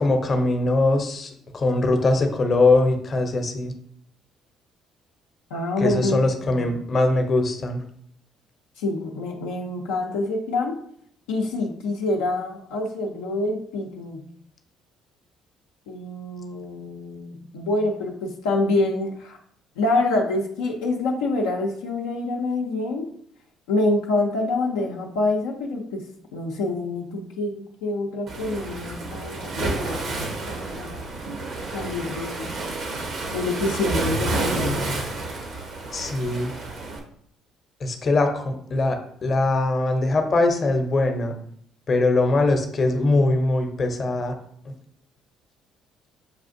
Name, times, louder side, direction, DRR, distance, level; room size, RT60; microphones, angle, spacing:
voice 1, 0.0-3.7 5.8-7.8 35.9-36.5 37.8-41.3 41.9-44.3 44.7-44.8, left 2 dB, 45° left, 5 dB, 0.7 m, -22 dB
voice 2, 5.5-6.7 8.8-10.8 11.3-14.2 15.9-19.4 19.8-23.1 23.7-26.0 26.3-30.0 30.5-31.1 31.7-32.5 33.3-35.0, left 2 dB, 85° left, -1 dB, 0.5 m, -26 dB
Waves surf, 28.3-37.0, right 2 dB, 65° right, 0.9 m, -30 dB
6.5 x 2.4 x 2.5 m, 0.64 s
hypercardioid pair, 60°, 0 cm